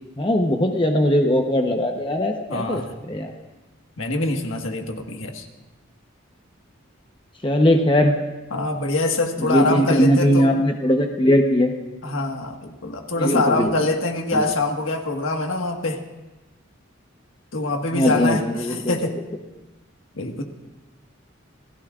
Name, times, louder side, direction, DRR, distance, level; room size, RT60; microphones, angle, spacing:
voice 1, 0.2-3.3 7.4-8.1 9.4-11.7 13.2-13.7 14.3-14.4 17.9-19.1, equal, 25° left, 3 dB, 0.9 m, -20 dB
voice 2, 2.5-3.0 4.0-5.5 8.5-10.5 12.0-16.0 17.5-19.2 20.1-20.4, left 2 dB, 75° left, 4 dB, 1.5 m, -24 dB
28.5 x 16.0 x 2.5 m, 1.1 s
head